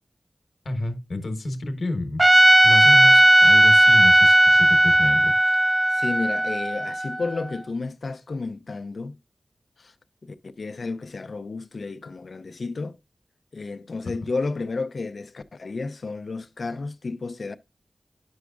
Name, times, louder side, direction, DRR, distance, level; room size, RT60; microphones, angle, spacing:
voice 1, 0.6-2.2 2.6-5.3, left 2 dB, 85° left, 1.1 m, -29 dB
Trumpet, 2.2-7.4, right 1 dB, 20° right, 0.4 m, -16 dB
voice 2, 5.9-9.2 9.8-9.9 10.2-13.0 13.5-17.6, left 3 dB, 70° left, 0.6 m, -32 dB
9.5 x 6.1 x 2.3 m
wide cardioid pair, 65°, 0 cm